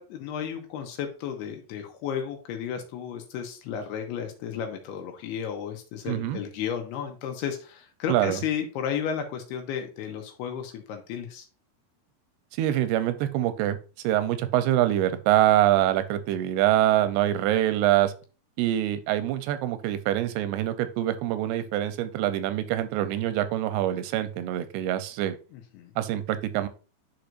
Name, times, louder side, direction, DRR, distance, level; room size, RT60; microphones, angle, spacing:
voice 1, 0.0-11.5 25.5-25.9, left 8 dB, 80° left, 4 dB, 2.9 m, -33 dB
voice 2, 6.1-6.4 8.1-8.4 12.6-13.8 14.0-18.1 18.6-25.4 26.0-26.7, right 13 dB, 90° right, 11 dB, 2.6 m, -25 dB
10.5 x 4.6 x 2.6 m, 0.34 s
omnidirectional pair, 4.6 m